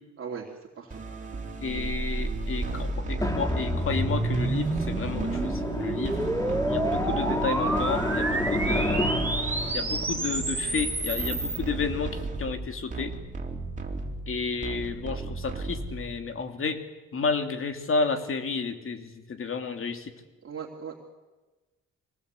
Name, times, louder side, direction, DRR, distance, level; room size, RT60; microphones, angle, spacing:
voice 1, 0.2-0.9 6.1-6.3 20.4-21.1, right 6 dB, 45° right, -1 dB, 3.0 m, -39 dB
sound 1, 0.9-16.3, right 3 dB, 25° right, 3.8 m, -35 dB
voice 2, 1.6-6.2 6.7-9.0 9.7-13.1 14.3-16.8 17.1-20.1, left 4 dB, 45° left, 6 dB, 2.7 m, -31 dB
sound 2, 1.7-11.6, right 2 dB, 5° right, 3.6 m, -30 dB
Drum, 3.2-11.5, left 1 dB, 10° left, 2.2 m, -31 dB
25.0 x 18.5 x 8.3 m, 1.2 s
cardioid pair, 90°, 30 cm